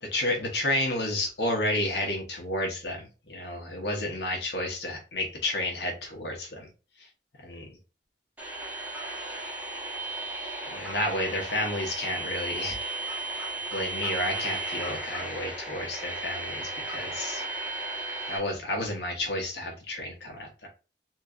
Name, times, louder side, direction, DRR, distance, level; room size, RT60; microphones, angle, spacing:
voice 1, 0.0-6.7 7.4-7.7 10.7-12.8 13.7-17.4 18.3-20.7, left 1 dB, 75° left, 1 dB, 1.3 m, -31 dB
sound 1, 8.4-18.4, right 2 dB, 10° right, 1.3 m, -35 dB
4.4 x 3.1 x 2.7 m, 0.32 s
head